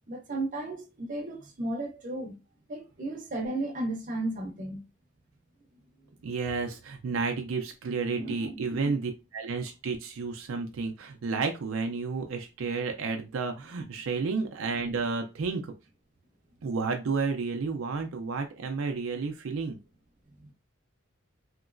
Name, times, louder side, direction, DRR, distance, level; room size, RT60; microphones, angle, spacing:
voice 1, 0.1-2.3 2.7-4.8 8.1-8.9 13.7-13.9 20.4-20.5, right 2 dB, 40° right, 0.7 m, -34 dB
voice 2, 6.2-15.7 16.6-19.8, right 4 dB, 75° right, 0.5 m, -31 dB
3.0 x 2.9 x 2.5 m
head